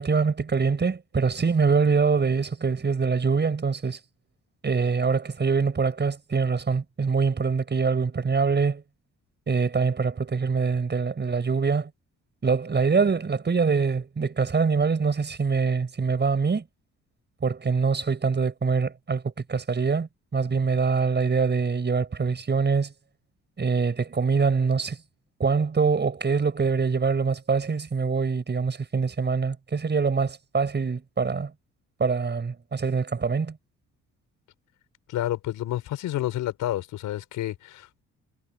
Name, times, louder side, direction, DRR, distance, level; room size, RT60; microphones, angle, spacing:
voice 1, 0.0-4.0 4.6-8.8 9.5-11.9 12.4-16.6 17.4-22.9 23.6-25.0 25.4-31.5 32.0-33.6, right 5 dB, 35° right, 7.3 m, -24 dB
voice 2, 35.1-38.0, left 13 dB, 85° left, 4.9 m, -30 dB
cardioid pair, 90°, 30 cm